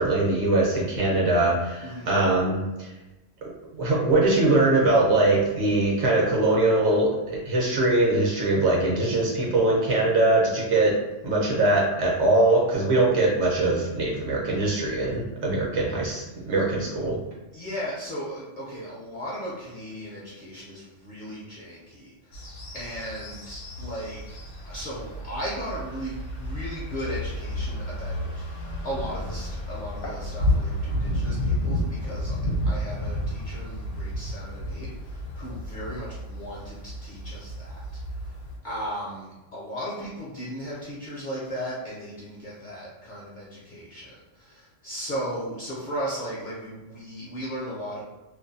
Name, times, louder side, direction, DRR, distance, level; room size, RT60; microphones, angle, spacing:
voice 1, 0.0-2.9 3.4-10.9 11.2-17.2, right 2 dB, 65° right, -3 dB, 0.9 m, -22 dB
voice 2, 1.8-2.1 17.5-22.4 22.7-24.4 24.6-32.4 32.6-37.8 38.2-38.3 38.6-48.0, equal, 55° left, -6 dB, 0.6 m, -36 dB
sound 1, 22.3-38.6, left 1 dB, 70° left, 1.0 m, -31 dB
2.5 x 2.2 x 2.6 m, 1.0 s
omnidirectional pair, 1.3 m